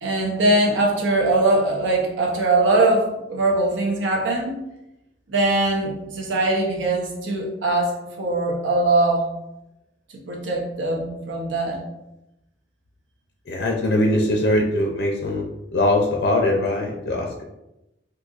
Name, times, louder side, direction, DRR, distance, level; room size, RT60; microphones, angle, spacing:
voice 1, 0.0-4.6 5.3-9.3 10.1-11.8, right 2 dB, 90° right, -1 dB, 0.8 m, -21 dB
voice 2, 13.5-15.4 15.7-17.4, left 1 dB, 65° left, 0 dB, 0.4 m, -21 dB
3.9 x 2.6 x 2.4 m, 0.90 s
head